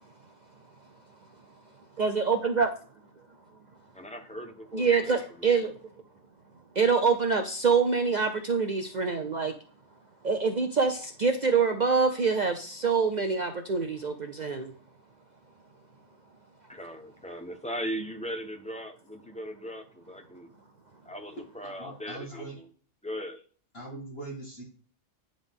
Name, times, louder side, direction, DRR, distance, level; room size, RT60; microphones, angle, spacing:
voice 1, 2.0-2.7 4.7-5.7 6.7-9.5 10.2-14.7, right 5 dB, 50° right, 6 dB, 0.6 m, -25 dB
voice 2, 3.9-5.6 16.7-20.5 21.0-22.6 23.0-23.4, equal, 5° left, 5 dB, 0.7 m, -39 dB
voice 3, 21.6-22.6 23.7-24.6, right 2 dB, 50° left, -4 dB, 2.3 m, -41 dB
9.7 x 3.8 x 3.6 m, 0.42 s
omnidirectional pair, 1.3 m